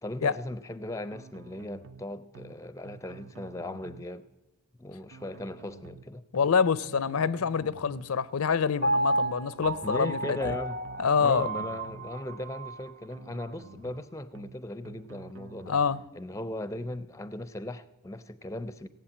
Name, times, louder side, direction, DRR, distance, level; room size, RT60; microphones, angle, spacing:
voice 1, 0.0-4.3 4.8-6.2 9.8-10.8 11.2-15.8 16.1-18.9, left 1 dB, 15° left, 0.5 m, -38 dB
sound 1, 1.1-2.0 2.3-2.6 2.8-4.1 5.1-6.0 6.3-6.6 6.8-8.1 9.1-10.0 10.3-10.6 10.8-12.1 13.1-14.0 14.3-14.6 14.8-16.1, right 4 dB, 60° right, 0.7 m, -49 dB
voice 2, 6.3-10.6 11.0-11.5 15.7-16.0, left 6 dB, 75° left, 0.5 m, -26 dB
Piano, 8.8-12.9 13.4-13.5, right 1 dB, 30° right, 0.8 m, -31 dB
17.5 x 8.0 x 8.4 m
head